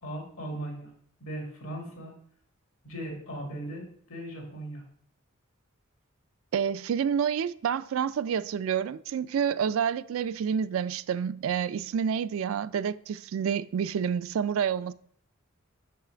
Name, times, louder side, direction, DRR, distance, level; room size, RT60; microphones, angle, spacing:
voice 1, 0.0-0.9 1.2-2.1 2.8-4.8, right 1 dB, 80° left, 2.2 m, -38 dB
voice 2, 6.5-14.9, right 7 dB, 70° right, 0.3 m, -28 dB
5.7 x 5.7 x 5.0 m
head